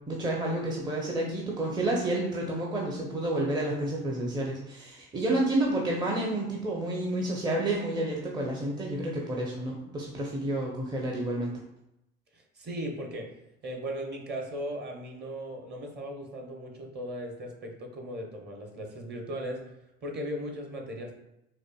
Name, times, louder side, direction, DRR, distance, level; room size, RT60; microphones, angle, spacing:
voice 1, 0.1-11.5, right 1 dB, 15° right, -2 dB, 0.5 m, -30 dB
voice 2, 12.3-13.3 13.6-19.7 20.0-21.2, equal, 35° right, 2 dB, 0.9 m, -37 dB
4.3 x 2.5 x 2.2 m, 0.85 s
hypercardioid pair, 65°, 30 cm